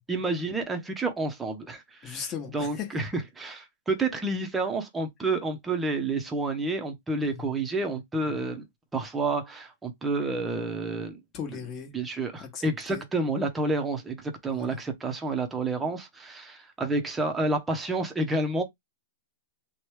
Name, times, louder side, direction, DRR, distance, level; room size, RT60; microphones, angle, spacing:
voice 1, 0.1-8.7 8.9-11.2 11.5-11.6 11.9-18.6, right 2 dB, 10° right, 0.7 m, -29 dB
voice 2, 2.0-2.9 7.2-7.5 8.3-8.4 11.3-11.9 12.4-12.6 12.9-13.0 14.5-14.8, left 7 dB, 30° left, 1.2 m, -37 dB
3.0 x 2.3 x 3.1 m
hypercardioid pair, 130°, 0 cm